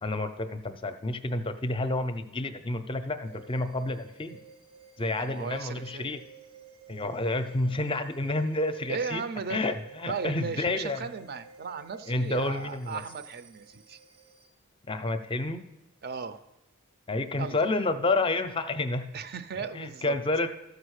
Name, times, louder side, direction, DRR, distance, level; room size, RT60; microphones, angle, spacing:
voice 1, 0.0-4.4 5.0-6.2 6.9-9.2 9.5-11.1 12.1-13.0 14.9-15.6 17.1-19.1 19.7-20.5, left 2 dB, 25° left, 10 dB, 0.6 m, -29 dB
sound 1, 3.2-14.5, right 6 dB, 85° right, 1.0 m, -52 dB
voice 2, 5.2-6.1 8.9-9.7 10.1-14.0 16.0-16.4 17.4-17.6 19.1-20.2, right 5 dB, 45° right, 11 dB, 0.5 m, -36 dB
13.5 x 5.0 x 6.4 m, 0.95 s
head